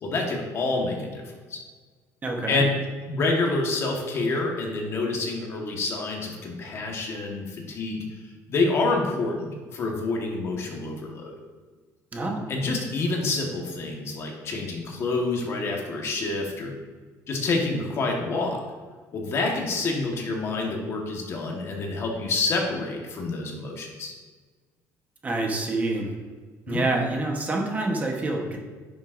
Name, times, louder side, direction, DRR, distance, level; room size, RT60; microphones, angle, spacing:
voice 1, 0.0-1.2 1.5-1.6 2.5-2.8 3.1-8.2 8.5-11.3 12.5-16.7 17.3-18.6 19.1-24.1 26.7-26.8, left 3 dB, 45° left, 1 dB, 1.4 m, -27 dB
voice 2, 2.2-2.6 12.1-12.5 25.2-26.1 26.7-28.6, right 2 dB, 25° right, 1 dB, 1.0 m, -27 dB
10.5 x 6.4 x 2.6 m, 1.4 s
cardioid pair, 135°, 6 cm